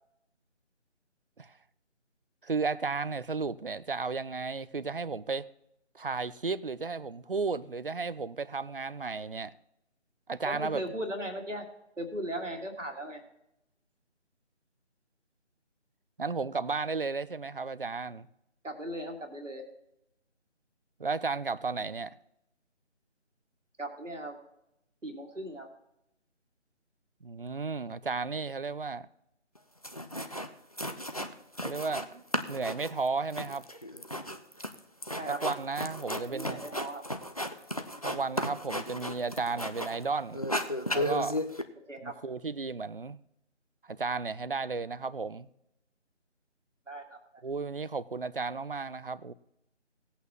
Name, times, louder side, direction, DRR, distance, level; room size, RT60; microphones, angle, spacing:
voice 1, 2.4-5.4 5.9-9.5 10.3-10.8 16.2-18.3 21.0-22.2 27.2-29.1 31.6-32.2 32.5-33.7 35.4-36.6 38.0-40.4 40.9-41.4 42.0-43.2 43.8-45.5 47.4-49.3, right 4 dB, 50° right, 0.5 m, -33 dB
voice 2, 10.4-11.7 12.0-13.2 18.6-19.6 23.8-24.4 25.0-25.7 35.2-35.4 36.3-37.0 41.9-42.1 46.9-47.4, right 1 dB, 90° right, 2.3 m, -37 dB
sound 1, 29.6-29.7 29.8-30.5 30.8-32.1 32.3-40.0 40.3-41.6, equal, 30° left, 0.5 m, -34 dB
18.5 x 8.4 x 3.0 m
figure-of-eight pair, 160°, 36 cm